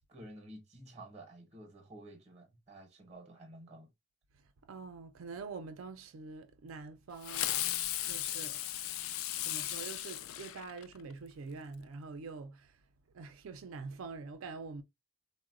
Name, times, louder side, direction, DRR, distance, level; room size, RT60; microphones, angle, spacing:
voice 1, 0.1-3.9, right 1 dB, 30° right, 0.7 m, -51 dB
voice 2, 4.7-7.6 8.0-8.6 9.5-12.7 13.1-14.8, right 4 dB, 85° right, 0.4 m, -45 dB
Fireworks, 7.2-11.1, left 13 dB, 90° left, 0.3 m, -36 dB
3.8 x 2.1 x 2.4 m
head